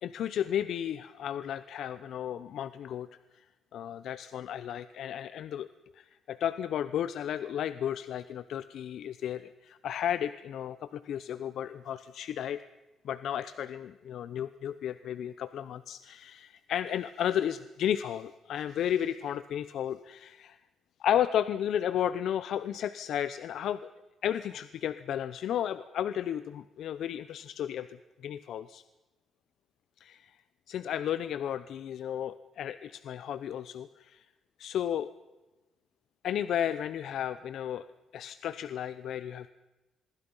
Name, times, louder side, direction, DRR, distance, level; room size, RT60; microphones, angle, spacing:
voice 1, 0.0-3.1 3.3-3.4 3.7-5.7 5.9-12.6 13.0-20.6 21.0-23.8 24.2-27.9 28.2-28.8 30.0-30.4 30.7-34.2 34.6-35.1 36.2-37.9 38.1-39.5, left 10 dB, 70° left, 14 dB, 0.7 m, -33 dB
26.5 x 21.5 x 5.5 m, 1.1 s
cardioid pair, 125°, 0 cm